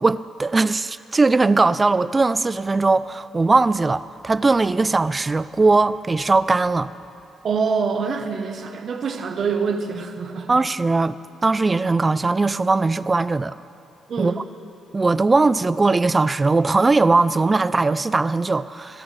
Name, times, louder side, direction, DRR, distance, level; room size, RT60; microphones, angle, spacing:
voice 1, 0.0-6.9 10.5-13.5 14.2-14.3 14.9-19.0, right 3 dB, 25° right, 16 dB, 0.4 m, -19 dB
voice 2, 7.4-10.5 14.1-14.4, right 5 dB, 55° right, 5 dB, 1.0 m, -25 dB
24.0 x 13.5 x 3.3 m, 2.8 s
cardioid pair, 90°, 0 cm